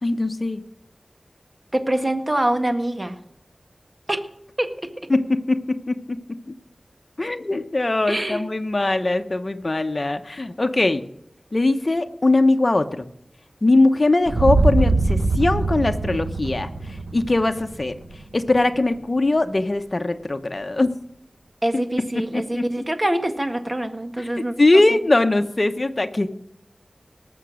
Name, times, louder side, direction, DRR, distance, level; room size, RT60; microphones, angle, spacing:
voice 1, 0.0-0.6 5.1-6.2 7.2-11.0 11.5-13.1 13.6-16.7 17.1-18.0 18.3-20.9 22.1-22.6 24.2-24.3 24.6-26.3, left 2 dB, 45° left, 7 dB, 1.0 m, -21 dB
voice 2, 1.7-3.1 4.1-4.2 4.6-4.7 8.1-8.4 21.6-24.5, right 1 dB, 30° right, 7 dB, 1.7 m, -24 dB
sound 1, 14.3-18.3, right 3 dB, 75° right, 1.2 m, -22 dB
19.0 x 7.0 x 6.4 m, 0.76 s
wide cardioid pair, 70°, 0 cm